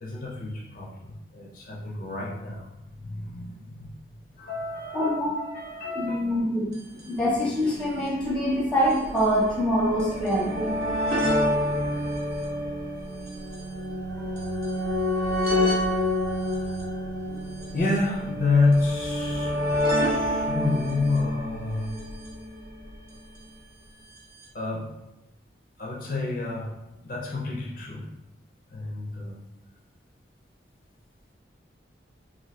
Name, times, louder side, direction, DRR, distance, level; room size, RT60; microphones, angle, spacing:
voice 1, 0.0-3.9 4.4-6.2 14.2-14.3 17.7-19.8 20.1-22.0 24.5-24.9 25.8-28.1 28.7-29.4, left 3 dB, 45° left, -3 dB, 0.5 m, -29 dB
voice 2, 4.9-5.3 5.9-6.7 7.0-10.7 14.1-14.2 17.3-17.4, equal, 5° left, -5 dB, 0.7 m, -25 dB
sound 1, 6.7-6.8 7.0-7.1 7.9-23.2 24.2-24.3 24.4-24.5, left 1 dB, 55° right, 0.7 m, -28 dB
2.7 x 2.6 x 3.1 m, 0.93 s
head